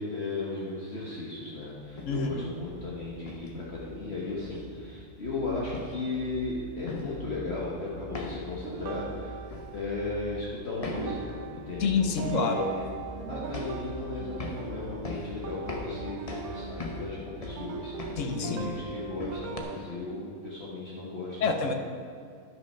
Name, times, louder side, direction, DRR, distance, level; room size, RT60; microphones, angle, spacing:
voice 1, 0.0-9.4 9.7-11.9 12.3-12.8 13.3-21.6, left 3 dB, 50° left, -6 dB, 1.5 m, -36 dB
sound 1, 1.8-19.6, left 2 dB, 30° left, 0.8 m, -42 dB
voice 2, 2.1-2.4 11.8-12.7 18.2-18.7 21.4-21.7, left 4 dB, 65° left, 6 dB, 1.1 m, -27 dB
sound 2, 8.6-10.4 10.8-19.8, right 5 dB, 80° right, 1.1 m, -40 dB
11.0 x 6.2 x 5.5 m, 2.2 s
omnidirectional pair, 1.5 m